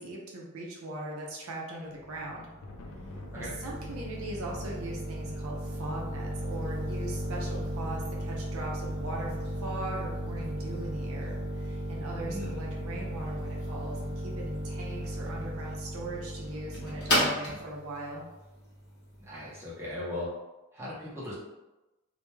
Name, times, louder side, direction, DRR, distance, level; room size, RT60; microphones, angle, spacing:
voice 1, 0.0-2.5 3.3-18.2, right 1 dB, 75° right, -2 dB, 0.5 m, -40 dB
Thunder, 2.0-11.4, left 2 dB, 80° left, 0.4 m, -51 dB
sound 1, 2.0-19.6, equal, 50° left, 0.8 m, -35 dB
voice 2, 12.2-12.6 19.2-20.3 20.7-21.3, left 1 dB, 10° right, -8 dB, 0.7 m, -38 dB
2.2 x 2.1 x 3.0 m, 1.0 s
head